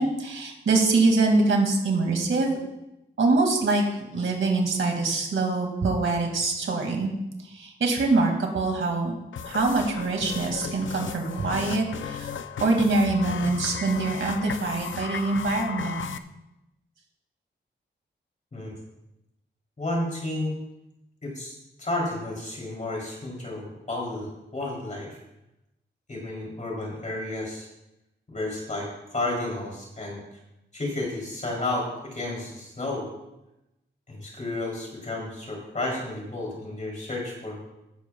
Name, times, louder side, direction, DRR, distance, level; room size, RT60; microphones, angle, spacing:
voice 1, 0.0-2.5 3.2-3.8 4.1-7.1 7.4-9.1 9.4-12.3 12.6-16.0, right 3 dB, 80° right, 2 dB, 2.3 m, -24 dB
sound 1, 9.3-16.2, left 7 dB, 75° left, 0.6 m, -35 dB
voice 2, 19.8-20.6 21.2-21.5 21.8-25.2 26.1-27.7 28.3-30.2 30.7-33.1 34.1-37.7, left 2 dB, 35° left, -2 dB, 3.3 m, -32 dB
15.5 x 11.5 x 2.3 m, 0.93 s
wide cardioid pair, 175°, 20 cm